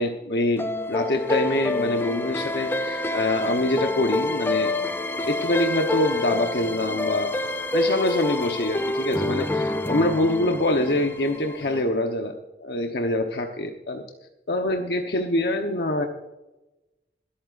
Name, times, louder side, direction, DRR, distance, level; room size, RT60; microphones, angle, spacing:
voice 1, 0.0-4.7 5.3-7.3 7.7-14.0 14.5-16.1, left 1 dB, 70° left, 3 dB, 1.0 m, -25 dB
sound 1, 0.6-11.8, left 2 dB, 10° left, 0.5 m, -27 dB
25.5 x 8.7 x 2.6 m, 1.0 s
head